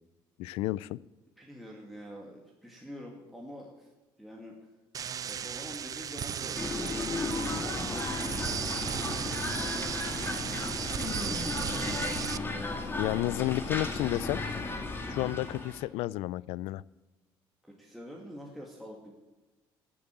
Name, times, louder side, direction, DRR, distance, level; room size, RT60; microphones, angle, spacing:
voice 1, 0.4-1.0 13.0-14.4 15.1-16.8, left 17 dB, 90° left, 22 dB, 0.4 m, -31 dB
voice 2, 1.4-3.9 4.2-4.6 5.2-9.6 10.9-13.3 15.0-15.4 17.6-19.1, equal, ahead, -2 dB, 2.2 m, -46 dB
sound 1, 4.9-12.4, right 8 dB, 40° right, 0.5 m, -35 dB
sound 2, 6.6-15.8, left 3 dB, 25° left, 2.3 m, -35 dB
12.0 x 7.7 x 9.1 m, 1.1 s
cardioid pair, 115°, 10 cm